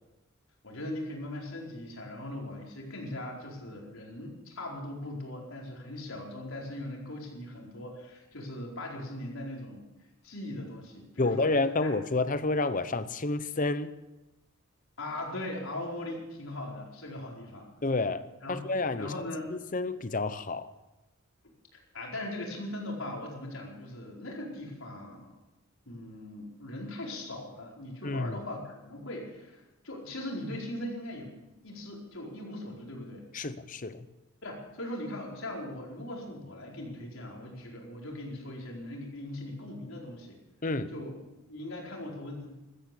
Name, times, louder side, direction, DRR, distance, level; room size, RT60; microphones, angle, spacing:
voice 1, 0.6-9.9 10.2-11.5 11.8-11.9 15.0-17.7 18.4-18.6 19.0-19.4 21.7-25.3 25.9-33.2 34.4-40.4 40.9-41.1 41.5-42.5, left 1 dB, 75° left, -1 dB, 4.6 m, -39 dB
voice 2, 11.2-13.9 17.8-20.7 28.0-28.4 33.3-34.1 40.6-40.9, left 3 dB, 40° left, 13 dB, 0.8 m, -30 dB
15.5 x 13.5 x 6.9 m, 1.0 s
head